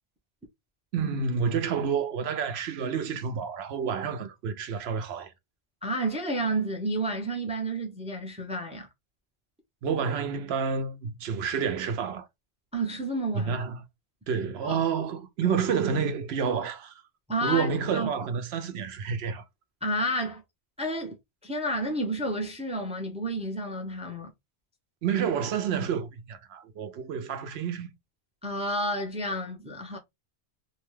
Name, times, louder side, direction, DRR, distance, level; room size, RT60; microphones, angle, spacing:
voice 1, 0.9-5.3 9.8-12.3 13.3-13.8 14.3-17.0 17.4-19.4 25.0-27.9, right 6 dB, 80° right, 0.8 m, -29 dB
voice 2, 5.8-8.9 12.7-13.6 14.6-14.8 15.4-15.6 17.3-18.1 19.8-20.4 20.8-21.1 21.4-24.3 28.4-30.0, right 1 dB, 10° right, 0.5 m, -30 dB
2.7 x 2.1 x 3.1 m
omnidirectional pair, 1.1 m